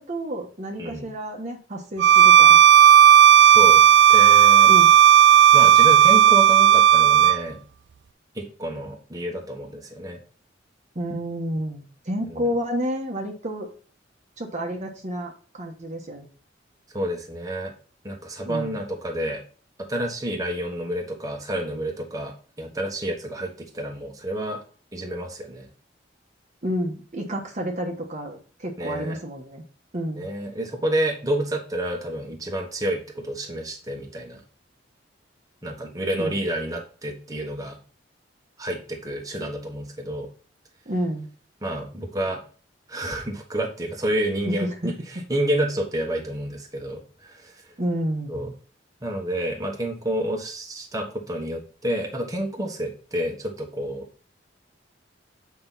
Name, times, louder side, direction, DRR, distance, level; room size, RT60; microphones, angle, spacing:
voice 1, 0.0-2.6 4.7-4.9 10.9-13.7 14.4-16.3 18.5-18.8 26.6-29.6 29.9-30.3 36.2-36.4 40.9-41.3 44.5-44.9 47.8-48.5, equal, 40° right, 2 dB, 1.3 m, -30 dB
Bowed string instrument, 2.0-7.4, right 10 dB, 65° right, 0.3 m, -13 dB
voice 2, 3.4-4.7 5.5-7.6 8.3-10.2 12.3-12.5 16.9-17.7 18.0-19.4 19.8-24.6 24.9-25.7 28.8-29.2 30.2-34.4 35.6-37.8 38.6-40.3 41.6-42.4 42.9-47.7 48.3-48.5 49.0-54.1, right 1 dB, 20° right, 1 dB, 1.4 m, -29 dB
8.0 x 5.3 x 4.1 m, 0.39 s
head